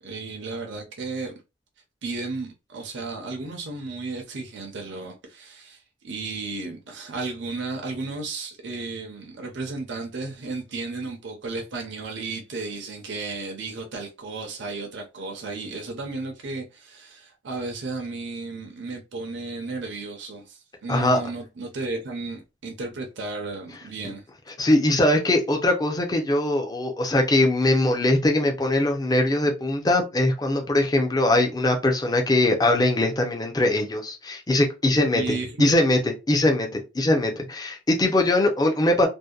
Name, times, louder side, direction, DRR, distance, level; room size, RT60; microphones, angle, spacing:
voice 1, 0.0-1.3 2.0-24.2 35.1-35.7, right 3 dB, 70° right, 0.6 m, -34 dB
voice 2, 20.9-21.2 24.0-24.1 24.6-36.0 36.3-39.1, left 1 dB, 20° left, 0.4 m, -21 dB
2.6 x 2.1 x 2.3 m
head